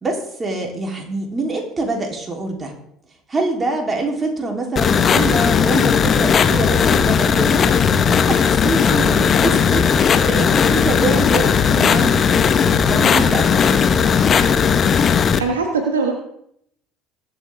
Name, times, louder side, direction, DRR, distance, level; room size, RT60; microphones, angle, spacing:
voice 1, 0.0-2.7 3.3-14.1, right 2 dB, 25° right, 1 dB, 3.3 m, -25 dB
sound 1, 4.8-15.4, left 7 dB, 40° left, 1.0 m, -16 dB
voice 2, 15.4-16.1, right 4 dB, 80° right, 4 dB, 1.4 m, -20 dB
21.5 x 7.5 x 3.6 m, 0.71 s
figure-of-eight pair, 60°, 0 cm